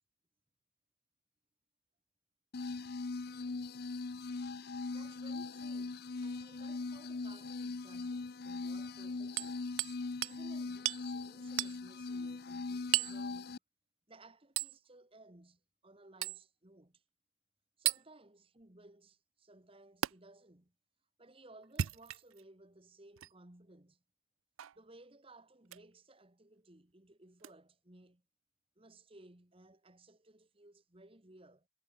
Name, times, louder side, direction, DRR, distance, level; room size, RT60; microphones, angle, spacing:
sound 1, 2.5-13.6, left 3 dB, 50° left, 0.6 m, -40 dB
voice 1, 4.9-13.6 14.1-17.0 17.8-20.7 21.2-24.0 24.8-28.2 28.8-31.7, right 2 dB, 25° right, 1.6 m, -60 dB
Hammer, 9.4-10.0 10.2-10.4 10.9-11.0 11.6-11.8 12.9-13.2 14.6-14.8 16.2-16.4 17.9-18.0 20.0-20.1 21.6-22.4 23.2-23.3 24.6-24.8 25.7-25.9 27.4-27.5, right 14 dB, 80° right, 0.4 m, -35 dB
head